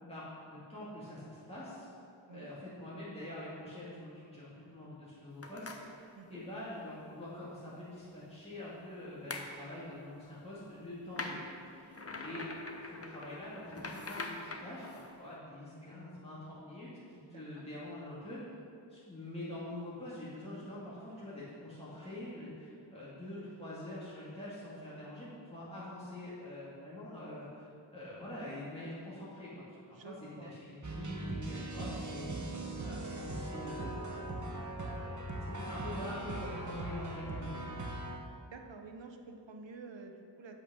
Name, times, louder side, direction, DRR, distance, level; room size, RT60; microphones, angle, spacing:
voice 1, 0.0-1.9 2.3-12.5 12.8-18.4 18.9-29.6 29.9-32.6 32.8-34.1 34.9-37.7, left 1 dB, 15° left, -10 dB, 2.1 m, -45 dB
sound 1, 5.4-5.8 9.3-9.5 11.1-15.1, left 3 dB, 30° left, 0.7 m, -43 dB
voice 2, 17.3-17.7 23.2-23.6 29.9-30.5 38.5-40.5, right 4 dB, 70° right, 5 dB, 0.9 m, -50 dB
sound 2, 30.8-38.2, right 2 dB, 40° right, 1.0 m, -40 dB
8.4 x 5.3 x 6.2 m, 2.5 s
wide cardioid pair, 90°, 46 cm